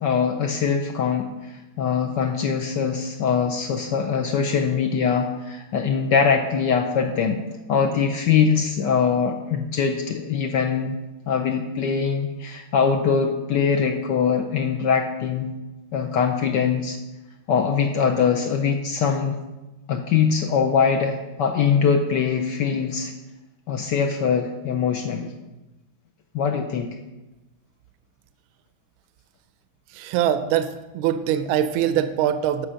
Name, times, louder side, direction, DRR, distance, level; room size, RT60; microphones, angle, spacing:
voice 1, 0.0-7.4 7.7-11.0 11.3-15.5 15.9-17.0 17.5-19.4 19.9-23.1 23.7-25.3 26.3-26.9, left 6 dB, 75° left, 3 dB, 1.0 m, -22 dB
voice 2, 29.9-32.7, right 10 dB, 80° right, 11 dB, 1.4 m, -23 dB
7.9 x 6.2 x 5.6 m, 1.1 s
omnidirectional pair, 2.4 m